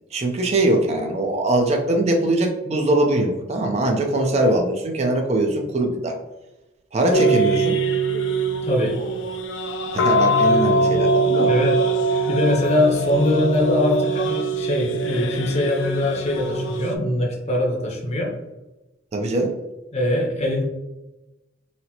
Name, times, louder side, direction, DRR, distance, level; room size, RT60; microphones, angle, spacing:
voice 1, 0.1-6.2 6.9-7.8 9.9-11.5 19.1-19.5, right 1 dB, 35° right, 2 dB, 0.4 m, -21 dB
sound 1, 7.1-17.0, right 2 dB, 70° left, 0.4 m, -22 dB
voice 2, 8.6-9.0 11.4-11.8 12.3-18.3 19.9-20.6, left 1 dB, 35° left, 0 dB, 0.7 m, -22 dB
4.2 x 2.0 x 2.7 m, 1.0 s
head